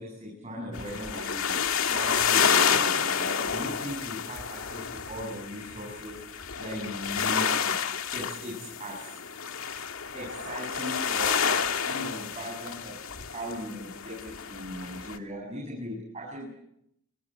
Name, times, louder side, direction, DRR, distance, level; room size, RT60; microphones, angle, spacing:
voice 1, 0.0-1.6 1.9-7.8 8.1-9.2 10.1-13.0 13.2-16.5, equal, 30° right, -1 dB, 7.7 m, -38 dB
sound 1, 0.7-15.2, left 7 dB, 85° left, 2.1 m, -29 dB
27.5 x 23.0 x 9.0 m, 0.78 s
head